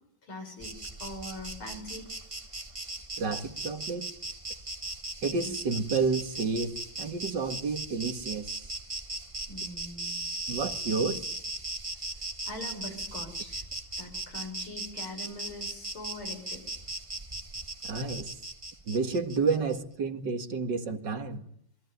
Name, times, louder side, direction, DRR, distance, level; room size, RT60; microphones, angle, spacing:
voice 1, 0.2-0.7 1.0-2.1 5.2-5.5 9.5-10.3 11.0-11.2 12.4-13.6 14.0-16.6, left 1 dB, 80° left, 5 dB, 6.7 m, -42 dB
Insect, 0.6-19.8, right 2 dB, 15° right, 1.6 m, -38 dB
voice 2, 3.2-4.1 5.2-8.6 10.5-11.3 17.8-18.3 18.9-21.4, right 4 dB, 60° right, 8 dB, 2.3 m, -30 dB
27.5 x 22.5 x 9.4 m, 0.72 s
omnidirectional pair, 2.3 m